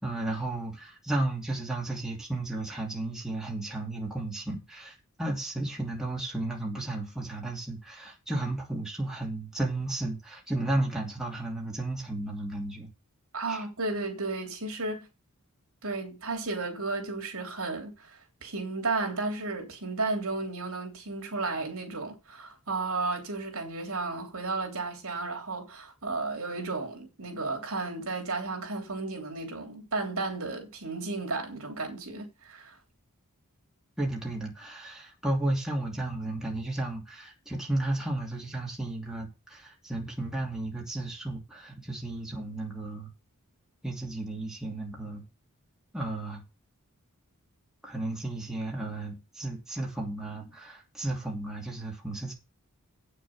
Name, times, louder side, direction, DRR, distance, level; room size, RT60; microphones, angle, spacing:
voice 1, 0.0-12.9 13.5-13.6 34.0-43.1 43.8-45.2 45.9-46.4 47.8-52.3, right 2 dB, ahead, 2.7 m, -33 dB
voice 2, 13.3-15.1 15.8-32.8, right 3 dB, 65° right, 3.3 m, -33 dB
8.7 x 6.6 x 7.2 m
head